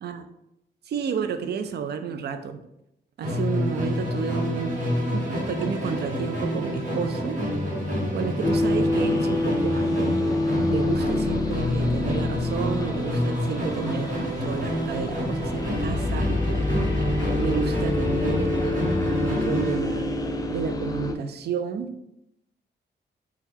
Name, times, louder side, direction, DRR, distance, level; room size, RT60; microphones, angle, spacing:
voice 1, 0.9-2.6 3.2-7.4 8.1-10.2 10.7-16.3 17.4-18.8 19.2-20.1 20.5-21.9, right 6 dB, 60° right, 9 dB, 0.4 m, -31 dB
Musical instrument, 3.2-19.9, equal, 40° right, 1.1 m, -28 dB
sound 1, 8.4-21.2, left 2 dB, 20° left, 0.3 m, -27 dB
2.8 x 2.3 x 3.5 m, 0.81 s
cardioid pair, 85°, 19 cm